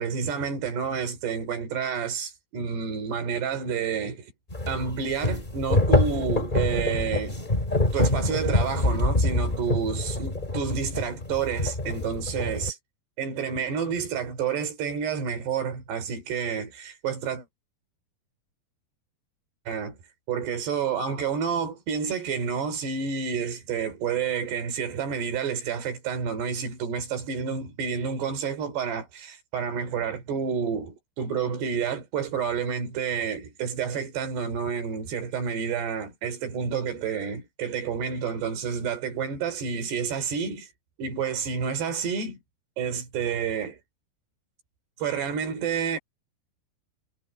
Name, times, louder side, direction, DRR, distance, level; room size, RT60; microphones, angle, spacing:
voice 1, 0.0-4.3 4.7-7.4 7.9-12.8 13.2-17.5 19.7-19.9 20.3-40.7 41.0-42.4 42.8-43.8 45.0-46.0, right 6 dB, 75° right, 5.5 m, -29 dB
sound 1, 4.5-12.7, left 2 dB, 15° left, 2.1 m, -26 dB
omnidirectional pair, 4.8 m